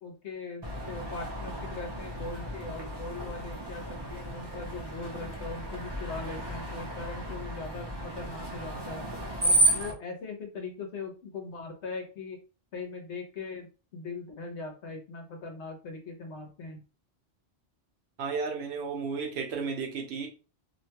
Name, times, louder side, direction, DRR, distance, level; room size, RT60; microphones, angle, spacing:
voice 1, 0.0-9.0 9.4-12.4 12.7-16.8, left 4 dB, 75° left, 1.1 m, -40 dB
Screech, 0.6-9.9, right 1 dB, 30° right, 0.5 m, -32 dB
voice 2, 18.2-20.3, right 5 dB, 70° right, 0.9 m, -33 dB
2.8 x 2.2 x 2.8 m
omnidirectional pair, 1.2 m